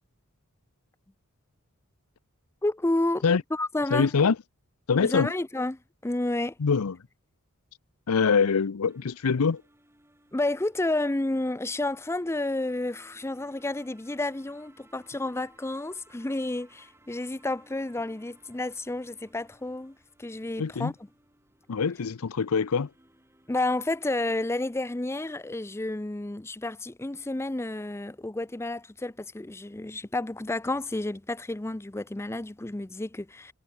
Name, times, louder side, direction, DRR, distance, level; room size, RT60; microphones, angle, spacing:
voice 1, 2.6-3.2 3.5-4.1 5.0-6.5 10.3-20.9 23.5-33.5, left 2 dB, 10° left, 0.5 m, -30 dB
voice 2, 3.9-4.4 4.9-5.3 6.6-7.0 8.1-9.6 20.6-20.9 21.7-22.9, left 5 dB, 90° left, 0.6 m, -24 dB
sound 1, 8.8-25.0, right 1 dB, 10° right, 7.6 m, -61 dB
head